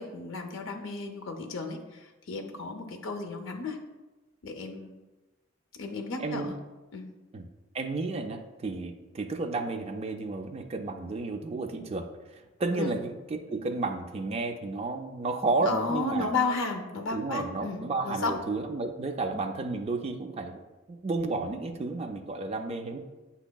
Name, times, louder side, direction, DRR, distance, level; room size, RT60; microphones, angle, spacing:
voice 1, 0.0-3.8 4.4-5.0 5.8-6.6 6.9-7.1 12.8-12.9 15.6-18.3, left 3 dB, 70° left, 3 dB, 0.5 m, -33 dB
voice 2, 6.2-6.5 7.3-7.5 7.7-16.3 17.1-20.6 20.9-23.0, right 3 dB, 30° right, 4 dB, 0.3 m, -32 dB
7.8 x 2.8 x 2.2 m, 1.1 s
head